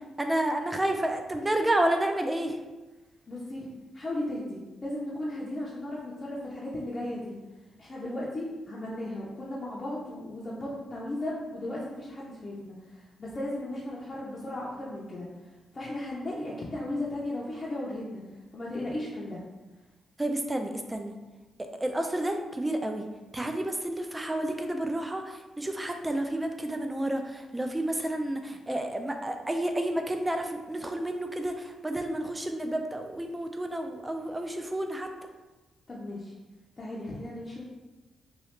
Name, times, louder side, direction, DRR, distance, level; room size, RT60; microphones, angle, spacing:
voice 1, 0.2-2.5 20.2-21.1 21.6-23.1 23.3-35.1, right 1 dB, 15° right, 5 dB, 0.3 m, -30 dB
voice 2, 3.3-3.7 3.9-7.3 7.8-15.3 15.7-18.2 18.5-19.4 35.9-36.3 36.8-37.6, left 1 dB, 35° left, -6 dB, 0.5 m, -36 dB
3.1 x 2.4 x 3.0 m, 1.2 s
cardioid pair, 95°, 0 cm